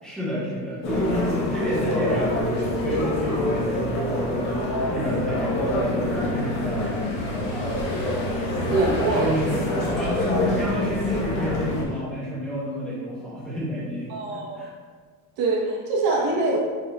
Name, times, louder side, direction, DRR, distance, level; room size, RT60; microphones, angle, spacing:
voice 1, 0.0-8.1 8.6-14.7, equal, ahead, -9 dB, 0.8 m, -30 dB
Walking Through Salt Lake City Airport, 0.8-11.8, left 1 dB, 40° left, 1.0 m, -26 dB
Car passing by / Engine, 5.3-12.0, equal, 70° left, 1.3 m, -39 dB
voice 2, 8.7-9.3 14.1-14.6 15.4-16.6, right 3 dB, 60° right, -2 dB, 1.0 m, -24 dB
5.2 x 4.5 x 2.3 m, 1.5 s
cardioid pair, 175°, 41 cm